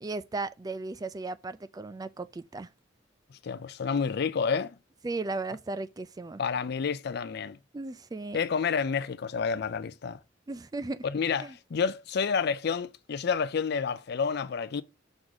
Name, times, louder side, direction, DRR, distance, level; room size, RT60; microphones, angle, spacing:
voice 1, 0.0-2.7 5.0-6.4 7.7-8.4 10.5-11.0 11.3-11.5, right 3 dB, 20° right, 0.4 m, -36 dB
voice 2, 3.4-4.7 6.4-7.6 8.3-10.2 11.0-14.8, left 6 dB, 60° left, 0.4 m, -29 dB
6.2 x 4.0 x 4.7 m
head